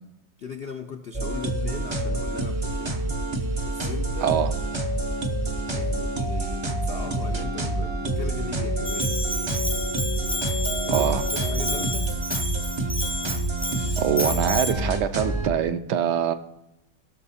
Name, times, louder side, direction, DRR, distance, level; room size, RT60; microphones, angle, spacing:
voice 1, 0.4-2.9 3.7-4.4 5.7-9.2 10.9-12.1, left 5 dB, 75° left, 6 dB, 0.5 m, -38 dB
sound 1, 1.1-15.5, right 2 dB, 45° right, 0.3 m, -27 dB
voice 2, 4.2-4.5 10.9-11.2 14.0-16.3, right 9 dB, 70° right, 9 dB, 1.3 m, -24 dB
Bell, 8.8-14.7, left 1 dB, 5° left, 0.5 m, -31 dB
16.0 x 6.4 x 4.1 m, 0.93 s
omnidirectional pair, 1.9 m